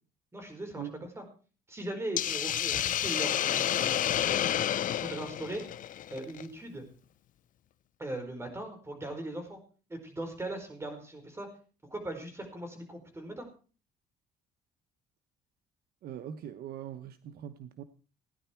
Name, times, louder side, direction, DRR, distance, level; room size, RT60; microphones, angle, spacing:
voice 1, 0.3-1.2 1.7-4.5 5.0-5.6 6.1-6.9 8.0-9.6 9.9-11.5 11.9-13.5, right 1 dB, 15° right, 4.7 m, -39 dB
Hiss, 2.2-6.4, left 11 dB, 50° left, 0.7 m, -30 dB
voice 2, 16.0-17.8, right 10 dB, 65° right, 0.9 m, -41 dB
16.5 x 10.5 x 4.5 m
cardioid pair, 110°, 17 cm